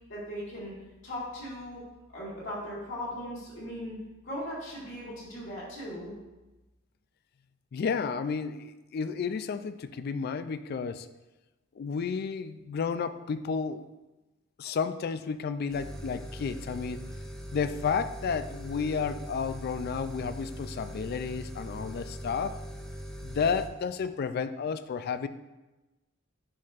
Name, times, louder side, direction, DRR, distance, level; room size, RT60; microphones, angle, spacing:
voice 1, 0.1-0.7 1.0-1.8 2.1-4.0 4.2-6.1, equal, 65° left, -8 dB, 2.2 m, -38 dB
voice 2, 7.7-11.1 11.8-13.9 14.6-17.0 17.5-22.6 23.2-25.3, left 5 dB, 50° left, 12 dB, 0.3 m, -32 dB
sound 1, 15.7-23.7, equal, ahead, 0.6 m, -41 dB
10.0 x 4.3 x 2.5 m, 1.1 s
head